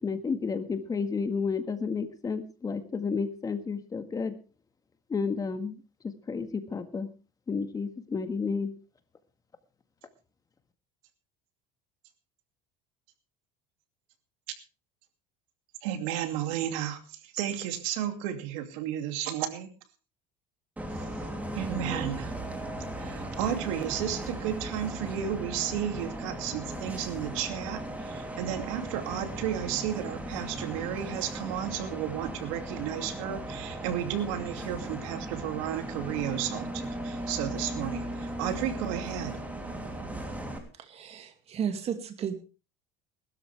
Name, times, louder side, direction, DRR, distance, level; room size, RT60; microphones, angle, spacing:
voice 1, 0.0-4.3 5.1-5.8 6.3-7.1 7.5-8.7, left 5 dB, 20° left, 9 dB, 1.8 m, -31 dB
voice 2, 15.8-19.7 21.5-22.3 23.0-39.4, right 10 dB, 90° right, 7 dB, 2.6 m, -33 dB
Bus, 20.8-40.6, right 1 dB, 10° right, 3.1 m, -37 dB
voice 3, 40.7-42.4, right 8 dB, 40° right, 7 dB, 2.5 m, -34 dB
21.0 x 12.5 x 3.4 m, 0.34 s
cardioid pair, 130°, 16 cm